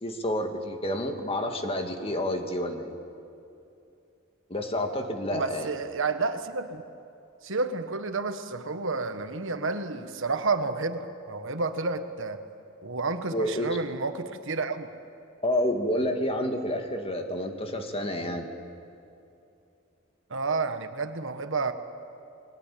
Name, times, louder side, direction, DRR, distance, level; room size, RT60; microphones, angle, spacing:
voice 1, 0.0-3.0 4.5-5.7 13.3-13.8 15.4-18.5, left 1 dB, 30° left, 4 dB, 2.1 m, -29 dB
voice 2, 5.3-6.8 7.4-12.4 12.8-14.9 20.3-21.7, right 3 dB, 65° right, 8 dB, 1.5 m, -30 dB
29.0 x 21.0 x 8.6 m, 2.7 s
head